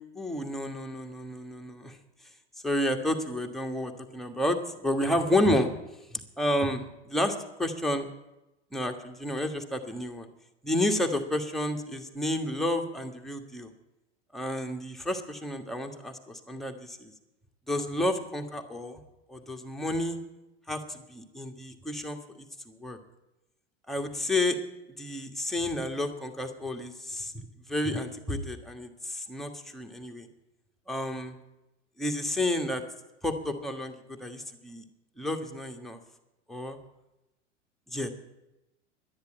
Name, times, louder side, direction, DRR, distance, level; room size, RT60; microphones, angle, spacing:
voice 1, 0.1-2.0 2.6-5.7 6.1-8.1 8.7-10.3 10.6-13.7 14.3-17.1 17.7-19.0 19.3-20.2 20.7-22.2 22.7-23.0 23.9-24.6 25.0-27.3 27.7-30.3 30.9-31.4 32.0-32.8 33.2-34.8 35.2-36.0 36.5-36.8 37.9-38.1, left 1 dB, ahead, 3 dB, 1.4 m, -30 dB
11.5 x 10.5 x 8.9 m, 0.96 s
figure-of-eight pair, 90°, 35 cm